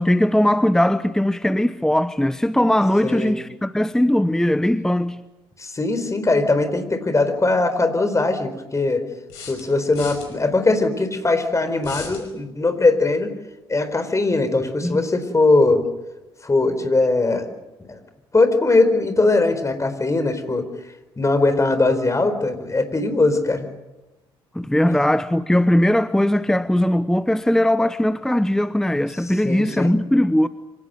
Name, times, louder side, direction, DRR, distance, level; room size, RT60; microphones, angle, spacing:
voice 1, 0.0-5.2 14.8-15.0 24.5-30.5, left 1 dB, 5° left, 1.0 m, -19 dB
voice 2, 3.0-3.3 5.6-9.0 9.5-13.3 13.7-15.9 16.4-17.5 17.9-18.0 18.3-20.7 21.2-23.7 24.9-25.0 29.4-29.9, left 3 dB, 25° left, 4.3 m, -20 dB
sound 1, 9.3-10.3 11.8-12.2, left 5 dB, 80° left, 5.3 m, -36 dB
25.5 x 18.0 x 9.2 m
hypercardioid pair, 50°, 13 cm